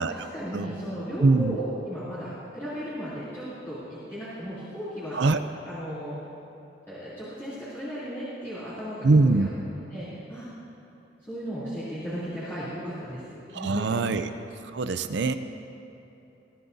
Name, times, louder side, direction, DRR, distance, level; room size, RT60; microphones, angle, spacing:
voice 1, 0.0-5.2 5.6-6.2 6.9-9.5 9.9-10.5 11.2-13.2 13.5-14.1, equal, 15° left, -14 dB, 3.1 m, -35 dB
voice 2, 1.2-1.6 5.1-5.4 9.0-9.5 13.5-14.3 14.7-15.3, right 3 dB, 70° right, 10 dB, 0.5 m, -22 dB
21.5 x 14.0 x 2.7 m, 3.0 s
head